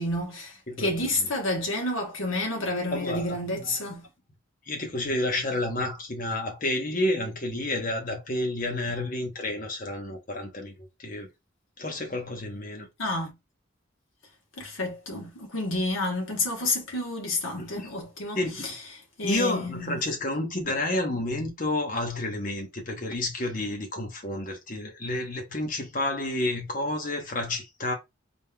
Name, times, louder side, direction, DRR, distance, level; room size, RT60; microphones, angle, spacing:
voice 1, 0.0-4.1 13.0-13.3 14.6-18.7 19.2-20.0, left 2 dB, 85° left, 1.3 m, -30 dB
voice 2, 0.7-1.3 2.9-3.7 4.7-11.3 11.8-12.9 17.6-17.9 18.3-18.7 19.2-27.9, left 1 dB, 45° left, 1.0 m, -30 dB
4.2 x 3.6 x 2.3 m
head